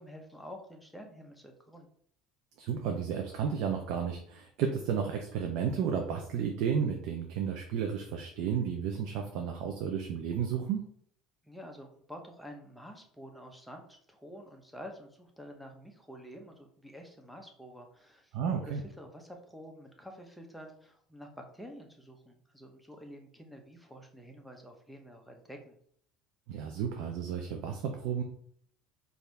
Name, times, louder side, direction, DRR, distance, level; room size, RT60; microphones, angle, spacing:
voice 1, 0.0-1.9 11.4-18.4 18.6-25.8, equal, ahead, 2 dB, 0.9 m, -49 dB
voice 2, 2.6-10.8 18.3-18.8 26.5-28.2, right 7 dB, 70° right, 3 dB, 0.6 m, -32 dB
4.6 x 2.7 x 3.4 m, 0.63 s
supercardioid pair, 95°, 0 cm